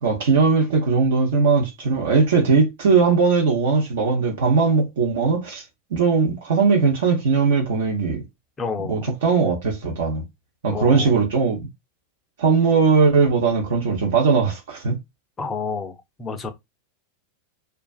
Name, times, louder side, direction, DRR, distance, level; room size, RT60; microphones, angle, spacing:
voice 1, 0.0-5.6 5.9-8.2 8.9-10.2 10.6-11.7 12.4-15.0, right 5 dB, 60° right, 0.6 m, -19 dB
voice 2, 8.6-9.1 10.7-11.2 15.4-16.5, left 5 dB, 20° left, 0.5 m, -30 dB
2.4 x 2.2 x 2.3 m
figure-of-eight pair, 90°, 0 cm